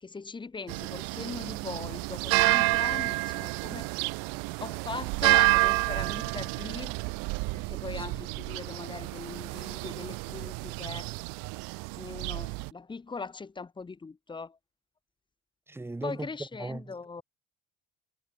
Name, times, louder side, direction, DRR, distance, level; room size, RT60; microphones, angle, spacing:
voice 1, 0.0-3.9 4.6-6.9 7.5-11.2 12.0-14.6 16.0-17.2, left 4 dB, 15° left, 2.3 m, -40 dB
sound 1, 0.7-12.7, right 30 dB, 80° right, 0.8 m, -29 dB
voice 2, 15.7-16.9, right 2 dB, 5° right, 2.2 m, -38 dB
cardioid pair, 170°, 34 cm